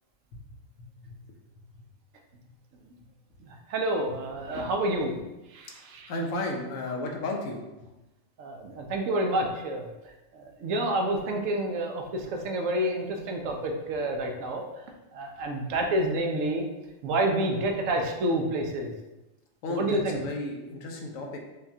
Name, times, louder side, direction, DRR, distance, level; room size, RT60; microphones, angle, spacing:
voice 1, 0.8-1.1 6.1-7.9 19.6-21.4, left 2 dB, 80° left, 2 dB, 1.1 m, -33 dB
voice 2, 3.4-5.2 5.5-6.1 8.4-9.9 10.3-14.6 15.1-16.6 17.0-18.9 19.7-20.2, right 1 dB, 75° right, 2 dB, 0.9 m, -29 dB
5.4 x 2.3 x 2.7 m, 1.0 s
omnidirectional pair, 1.4 m